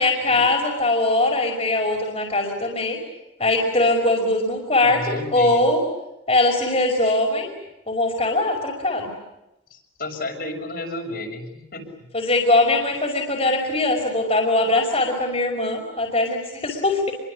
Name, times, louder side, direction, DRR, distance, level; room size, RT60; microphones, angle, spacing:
voice 1, 0.0-3.0 3.4-5.8 6.3-7.5 7.9-9.1 12.1-17.1, left 2 dB, 35° left, 0 dB, 5.5 m, -21 dB
voice 2, 4.8-5.7 7.0-7.2 9.7-11.9, left 2 dB, 55° left, 1 dB, 6.8 m, -33 dB
29.5 x 24.0 x 8.5 m, 0.92 s
head